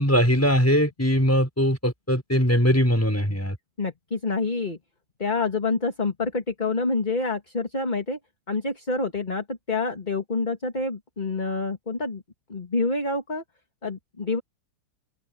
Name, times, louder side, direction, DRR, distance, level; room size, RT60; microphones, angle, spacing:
voice 1, 0.0-3.6, equal, 10° left, 5.4 m, -21 dB
voice 2, 3.8-4.8 5.2-8.2 8.5-12.2 12.5-13.4 13.8-14.4, left 3 dB, 25° left, 2.2 m, -27 dB
open air
omnidirectional pair, 1.9 m